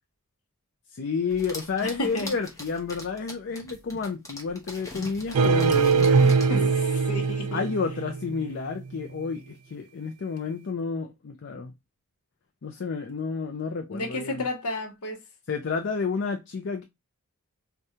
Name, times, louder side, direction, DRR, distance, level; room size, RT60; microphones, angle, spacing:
voice 1, 0.9-6.7 7.5-11.7 12.6-14.4 15.5-16.8, left 5 dB, 55° left, 0.5 m, -31 dB
sound 1, 1.3-6.5, left 1 dB, 15° left, 0.9 m, -42 dB
voice 2, 1.8-2.3 6.2-7.6 13.9-15.2, left 1 dB, 75° left, 0.8 m, -32 dB
sound 2, 5.3-8.4, right 4 dB, 80° right, 0.4 m, -22 dB
4.8 x 2.3 x 2.7 m
head